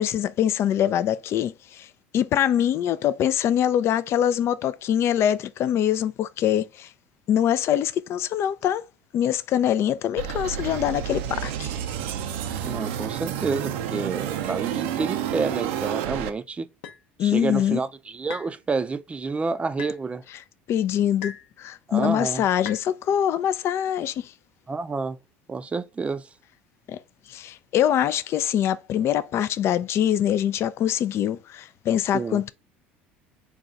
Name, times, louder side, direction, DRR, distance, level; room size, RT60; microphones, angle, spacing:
voice 1, 0.0-1.9 2.1-6.9 7.3-8.8 9.1-11.7 17.2-17.8 20.7-24.3 26.9-27.0 27.3-32.5, left 10 dB, 45° left, 0.3 m, -24 dB
sound 1, 10.2-16.3, right 10 dB, 75° right, 0.5 m, -30 dB
voice 2, 12.5-16.7 17.2-20.2 21.9-22.4 24.7-25.2 25.5-26.3 32.1-32.4, right 4 dB, 20° right, 0.4 m, -29 dB
sound 2, 16.8-17.0 18.3-18.6 19.8-20.0 21.2-21.5 22.6-22.9, left 8 dB, 80° left, 0.7 m, -37 dB
4.0 x 2.3 x 3.7 m
hypercardioid pair, 80°, 6 cm